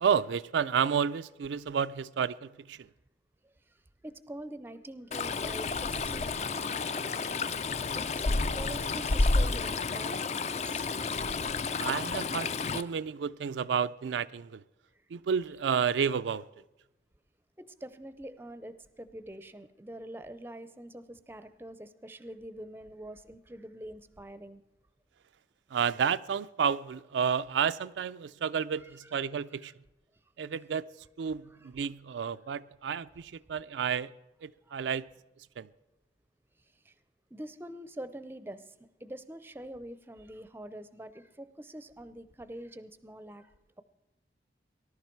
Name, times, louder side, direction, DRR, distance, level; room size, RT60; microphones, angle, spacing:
voice 1, 0.0-2.9 11.8-14.6 15.1-16.5 25.7-29.7 30.4-30.9 31.2-34.1 34.4-35.1 35.6-35.7, right 7 dB, 90° right, 0.4 m, -31 dB
voice 2, 3.4-6.8 8.0-8.1 8.5-10.9 14.9-15.0 17.6-24.6 28.8-29.7 31.5-31.7 34.6-34.8 36.6-36.9 37.3-43.8, right 1 dB, 10° right, 0.5 m, -45 dB
Stream, 5.1-12.8, left 3 dB, 40° left, 0.4 m, -30 dB
19.5 x 11.5 x 4.5 m
head